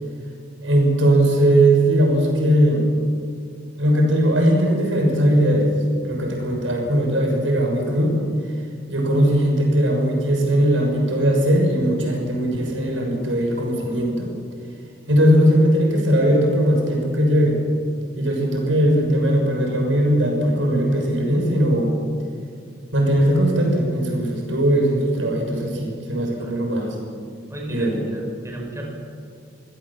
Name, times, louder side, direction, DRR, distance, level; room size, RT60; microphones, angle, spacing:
voice 1, 0.6-2.9 3.8-5.7 6.0-8.1 8.9-14.3 15.1-17.6 18.1-21.9 22.9-26.9 27.7-28.0, right 1 dB, 90° right, 0 dB, 6.4 m, -19 dB
voice 2, 27.5-28.9, right 1 dB, 15° right, -1 dB, 4.8 m, -34 dB
25.5 x 16.0 x 7.5 m, 2.3 s
head